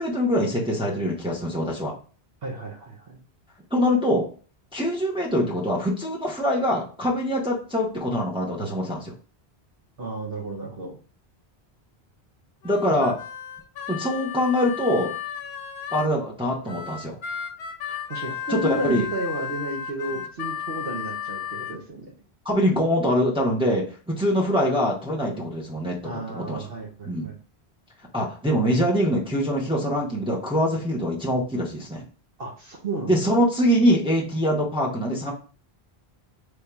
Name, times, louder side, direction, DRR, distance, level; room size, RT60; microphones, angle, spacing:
voice 1, 0.0-2.0 3.7-4.3 4.7-9.1 12.6-13.1 13.9-15.1 15.9-17.2 18.5-19.0 22.4-26.6 27.0-27.3 28.1-32.0 33.1-35.3, equal, 5° right, -4 dB, 0.9 m, -24 dB
voice 2, 2.4-3.2 10.0-11.0 12.9-13.0 18.1-22.1 26.0-27.4 32.4-33.2, right 1 dB, 65° right, -2 dB, 1.0 m, -32 dB
Harmonica, 12.6-16.1 16.7-21.8, left 8 dB, 70° left, 0.8 m, -34 dB
3.4 x 2.7 x 4.5 m, 0.38 s
omnidirectional pair, 1.1 m